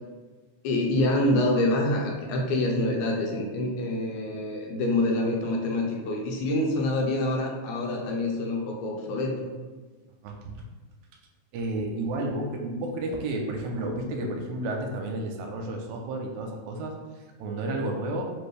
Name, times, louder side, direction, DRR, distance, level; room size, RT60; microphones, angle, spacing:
voice 1, 0.6-9.5, left 1 dB, 85° left, 0 dB, 2.1 m, -26 dB
voice 2, 10.2-10.6 11.5-18.2, right 2 dB, 80° right, 2 dB, 1.9 m, -32 dB
4.7 x 2.6 x 3.2 m, 1.3 s
omnidirectional pair, 3.4 m